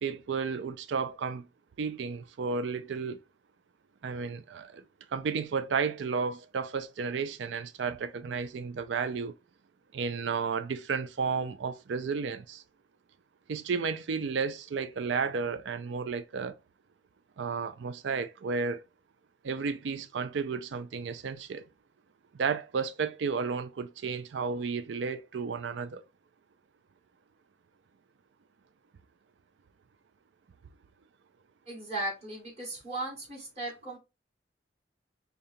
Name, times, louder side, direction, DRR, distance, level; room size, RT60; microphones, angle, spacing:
voice 1, 0.0-1.4 1.8-3.2 4.0-4.8 5.1-9.4 9.9-12.6 13.5-16.5 17.4-18.8 19.4-21.6 22.4-26.0, right 5 dB, 85° right, 0.4 m, -32 dB
voice 2, 31.7-34.0, right 1 dB, 35° right, 2.2 m, -36 dB
5.0 x 2.3 x 2.7 m
head